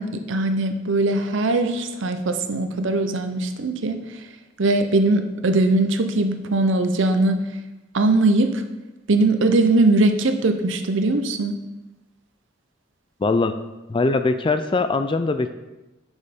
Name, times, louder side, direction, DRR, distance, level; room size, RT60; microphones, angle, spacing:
voice 1, 0.0-4.3 4.6-7.5 7.9-8.6 9.1-11.6, right 2 dB, 60° right, 8 dB, 0.7 m, -20 dB
voice 2, 13.2-13.5 13.9-15.5, left 3 dB, 25° left, 9 dB, 0.3 m, -21 dB
6.2 x 5.5 x 5.2 m, 1.1 s
head